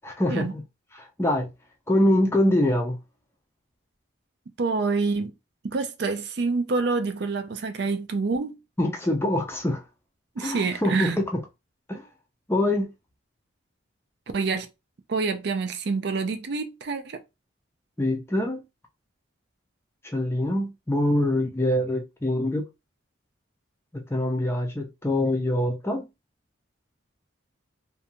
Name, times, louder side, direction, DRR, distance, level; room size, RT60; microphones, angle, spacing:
voice 1, 0.0-0.6 0.9-1.5 1.9-3.0 8.8-9.8 10.4-11.4 11.9-12.1 12.5-12.9 18.0-18.6 20.0-22.6 23.9-26.1, left 1 dB, 15° left, 0.4 m, -24 dB
voice 2, 4.6-5.3 5.6-8.6 10.4-11.2 14.3-14.7 15.1-17.2, right 4 dB, 55° right, 0.4 m, -27 dB
2.6 x 2.2 x 2.8 m
head